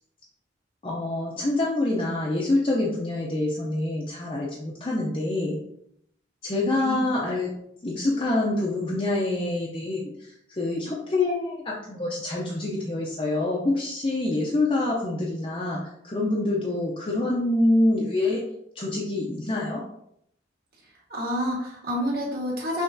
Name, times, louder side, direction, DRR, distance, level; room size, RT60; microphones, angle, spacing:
voice 1, 0.8-5.6 6.4-7.5 7.8-18.4 18.8-19.8, left 2 dB, 30° left, -4 dB, 0.6 m, -26 dB
voice 2, 21.1-22.8, equal, 50° right, -3 dB, 1.5 m, -28 dB
5.8 x 3.1 x 2.7 m, 0.74 s
head